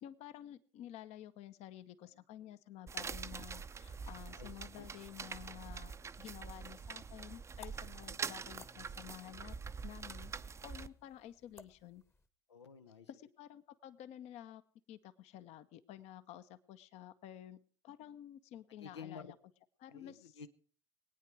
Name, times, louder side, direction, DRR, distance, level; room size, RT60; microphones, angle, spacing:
voice 1, 0.0-9.6 9.8-12.0 13.1-14.6 14.9-19.3 19.8-20.4, left 11 dB, 50° left, 14 dB, 0.9 m, -52 dB
voice 2, 2.0-2.5 4.3-4.9 12.5-13.1 18.8-19.3 19.9-20.5, left 6 dB, 85° left, 7 dB, 0.7 m, -52 dB
sound 1, 2.9-10.9, right 5 dB, 20° right, 0.6 m, -45 dB
sound 2, 6.4-12.3, left 4 dB, 15° left, 1.0 m, -62 dB
21.5 x 9.3 x 4.7 m, 0.42 s
hypercardioid pair, 75°, 14 cm